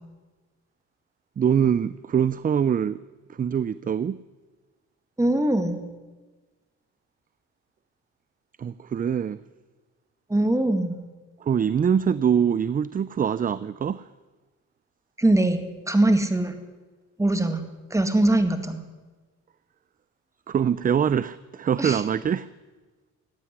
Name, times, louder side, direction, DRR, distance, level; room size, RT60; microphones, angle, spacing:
voice 1, 1.4-3.0 3.3-4.2 8.6-9.4 11.4-14.1 20.5-22.5, right 8 dB, 30° right, 0.4 m, -24 dB
voice 2, 5.2-5.8 10.3-11.0 15.2-16.6 17.2-17.6 17.9-18.8 21.8-22.0, right 1 dB, 10° right, 2.0 m, -22 dB
15.5 x 9.3 x 10.0 m
cardioid pair, 90°, 30 cm